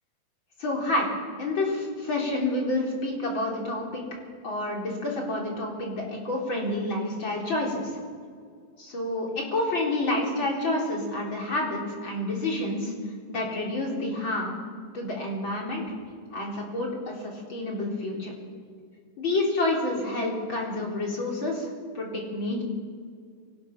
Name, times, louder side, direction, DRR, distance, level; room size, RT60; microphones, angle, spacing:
voice 1, 0.6-1.1 1.4-4.0 4.4-7.9 8.8-12.9 13.3-14.6 14.9-15.8 16.3-18.3 19.2-21.7 21.9-22.6, left 2 dB, 35° left, -1 dB, 4.3 m, -29 dB
24.5 x 19.0 x 6.0 m, 2.1 s
omnidirectional pair, 3.9 m